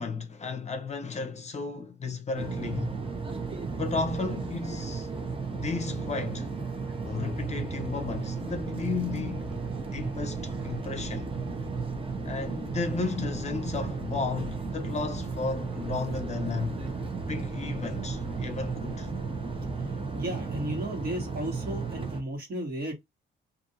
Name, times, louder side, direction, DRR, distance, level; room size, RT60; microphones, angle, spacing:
voice 1, 0.0-3.0 3.8-5.1 5.5-6.5 7.0-9.5 9.9-11.3 12.2-16.8 17.3-19.1, left 4 dB, 35° left, 0.7 m, -33 dB
sound 1, 2.3-22.2, right 4 dB, 25° right, 0.9 m, -34 dB
sound 2, 8.0-20.1, left 2 dB, ahead, 1.2 m, -46 dB
voice 2, 20.1-22.9, right 1 dB, 50° right, 1.5 m, -34 dB
2.6 x 2.6 x 2.6 m
cardioid pair, 90°, 20 cm